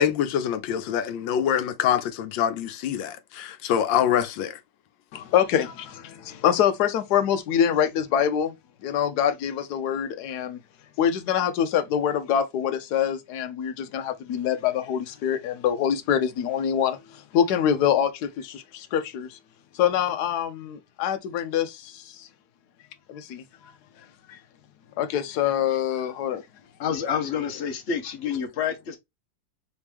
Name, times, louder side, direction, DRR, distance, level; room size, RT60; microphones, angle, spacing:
voice 1, 0.0-4.6, left 9 dB, 85° left, 1.4 m, -25 dB
voice 2, 5.1-8.5 8.8-10.6 11.0-17.0 17.3-19.4 19.8-22.3 23.1-23.7 24.3-24.4 25.0-26.4, left 9 dB, 65° left, 1.2 m, -25 dB
voice 3, 26.8-29.0, left 7 dB, 45° left, 1.1 m, -28 dB
4.3 x 3.0 x 3.4 m
omnidirectional pair, 2.0 m